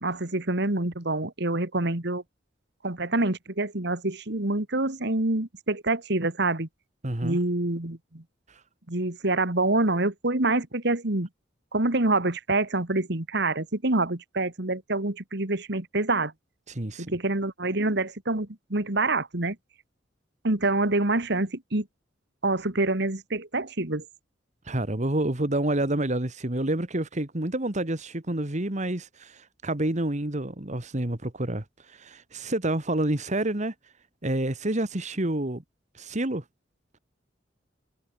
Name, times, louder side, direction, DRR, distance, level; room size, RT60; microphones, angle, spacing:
voice 1, 0.0-2.2 2.8-6.7 7.2-8.2 8.9-11.3 11.7-16.3 17.0-19.6 20.4-21.8 22.4-24.0, right 2 dB, 65° right, 2.4 m, -26 dB
voice 2, 7.0-7.4 16.7-17.2 24.7-33.7 34.2-35.6 36.0-36.4, right 1 dB, 40° right, 1.9 m, -28 dB
head